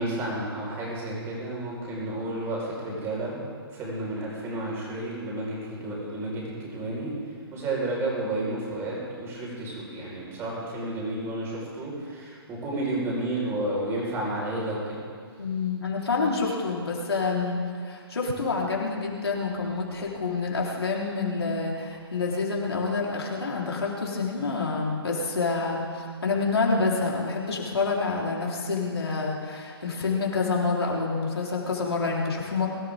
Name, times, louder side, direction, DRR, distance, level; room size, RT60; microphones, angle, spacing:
voice 1, 0.0-7.1 7.5-15.0, right 1 dB, 20° right, -4 dB, 4.8 m, -31 dB
voice 2, 15.4-32.7, left 4 dB, 75° left, -3 dB, 4.0 m, -27 dB
22.5 x 13.0 x 3.7 m, 2.1 s
figure-of-eight pair, 140°, 13 cm